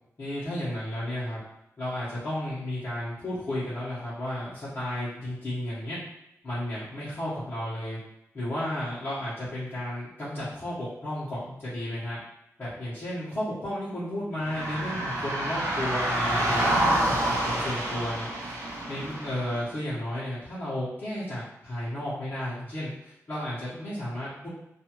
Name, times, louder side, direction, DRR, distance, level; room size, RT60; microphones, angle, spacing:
voice 1, 0.2-1.4 1.8-6.0 6.4-8.0 8.3-12.2 12.6-18.6 18.9-24.5, left 1 dB, 45° left, -12 dB, 1.0 m, -33 dB
sound 1, 14.4-19.6, right 1 dB, 65° right, 0.7 m, -28 dB
2.7 x 2.4 x 2.9 m, 0.87 s
wide cardioid pair, 125°, 5 cm